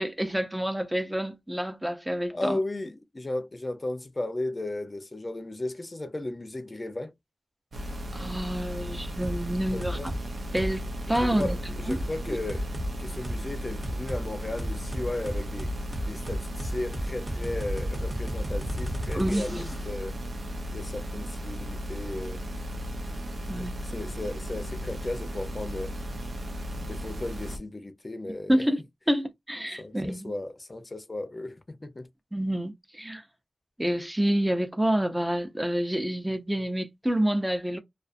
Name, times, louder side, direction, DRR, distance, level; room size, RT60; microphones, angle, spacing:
voice 1, 0.0-2.6 8.1-10.1 10.5-11.6 11.9-12.0 12.3-12.4 19.1-19.7 23.5-23.7 28.5-28.8 29.1-30.3 32.3-33.2 33.8-37.8, right 1 dB, 10° right, 0.6 m, -28 dB
voice 2, 2.3-7.1 9.7-10.1 11.1-12.7 13.0-15.7 16.0-20.1 20.7-22.4 23.6-25.9 26.8-28.6 29.8-32.1, left 2 dB, 35° left, 0.6 m, -35 dB
sound 1, 7.7-27.6, equal, 75° right, 0.7 m, -36 dB
sound 2, 9.2-9.4 9.8-10.2 10.6-10.8 11.1-11.5 11.9-12.0 12.5-12.9 13.2-13.4 13.8-14.2 14.6-19.9, equal, 30° right, 0.9 m, -33 dB
2.4 x 2.4 x 2.5 m
wide cardioid pair, 75°, 0 cm